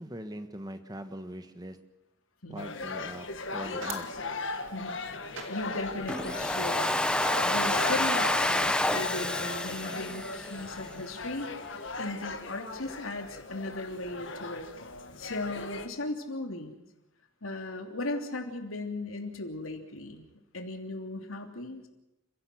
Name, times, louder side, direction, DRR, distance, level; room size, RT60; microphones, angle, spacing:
voice 1, 0.0-1.8 2.5-4.1, right 1 dB, 20° right, 9 dB, 1.4 m, -41 dB
voice 2, 2.4-2.7 4.7-6.9 7.4-11.5 12.0-14.6 15.2-16.7 17.4-20.2 20.5-21.9, left 2 dB, 80° left, 4 dB, 3.0 m, -37 dB
sound 1, 2.6-15.9, left 3 dB, 65° left, 1.8 m, -38 dB
sound 2, 3.2-8.8, right 5 dB, 65° right, 2.3 m, -49 dB
Domestic sounds home sounds, 6.1-11.0, left 1 dB, 5° left, 1.0 m, -29 dB
29.5 x 16.0 x 6.3 m, 0.92 s
head